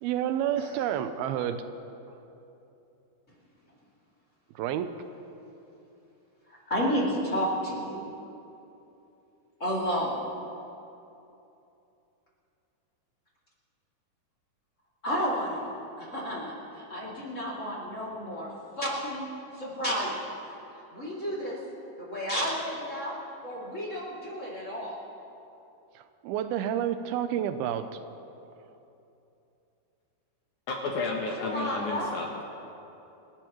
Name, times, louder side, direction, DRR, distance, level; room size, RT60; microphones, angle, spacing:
voice 1, 0.0-1.6 4.6-4.9 26.0-27.9, right 10 dB, 85° right, 10 dB, 2.5 m, -29 dB
voice 2, 6.7-8.0 9.6-10.3 15.0-18.5 18.8-19.3 19.6-20.4 20.9-21.6 22.0-23.1 23.4-25.0 31.4-32.1, equal, 25° left, -6 dB, 2.3 m, -31 dB
voice 3, 30.7-32.4, left 3 dB, 65° left, 0 dB, 2.1 m, -32 dB
28.5 x 11.5 x 3.0 m, 2.9 s
omnidirectional pair, 4.4 m